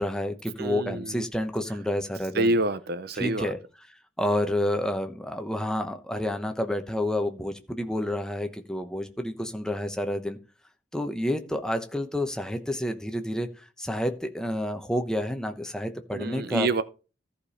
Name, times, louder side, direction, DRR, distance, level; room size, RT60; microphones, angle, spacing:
voice 1, 0.0-2.5 3.1-3.6 4.2-10.4 10.9-16.7, left 1 dB, 5° left, 0.9 m, -29 dB
voice 2, 0.6-1.2 2.3-3.5 16.1-16.8, right 2 dB, 50° right, 0.5 m, -27 dB
14.0 x 5.1 x 4.2 m
head